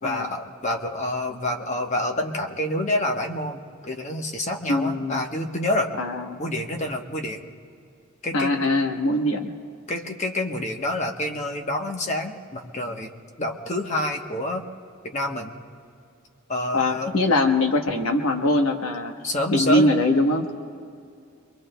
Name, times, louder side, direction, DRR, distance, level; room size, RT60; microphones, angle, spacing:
voice 1, 0.0-5.9 6.4-7.4 8.2-8.5 9.9-13.1 13.4-14.6 15.0-15.5 16.5-17.1 19.2-19.9, left 1 dB, 35° left, 3 dB, 1.0 m, -27 dB
voice 2, 4.7-5.2 6.0-6.4 8.3-9.5 16.7-19.1 19.5-20.5, left 1 dB, 65° left, 4 dB, 1.0 m, -22 dB
24.5 x 23.0 x 2.2 m, 2.3 s
head